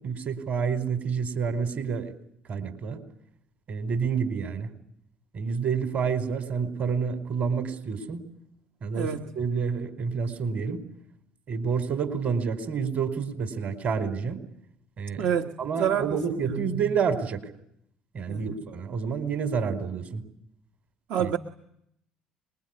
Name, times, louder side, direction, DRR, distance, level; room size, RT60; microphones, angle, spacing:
voice 1, 0.0-2.1 2.5-3.0 3.7-4.7 5.3-8.3 8.8-9.1 9.3-10.8 11.5-14.4 15.0-15.3 15.6-17.4 18.1-20.2 21.2-21.3, right 6 dB, 50° right, 4.9 m, -29 dB
voice 2, 8.9-9.3 15.2-16.8 18.3-18.6 21.1-21.4, right 8 dB, 65° right, 1.5 m, -28 dB
26.5 x 22.0 x 9.8 m
hypercardioid pair, 60°, 4 cm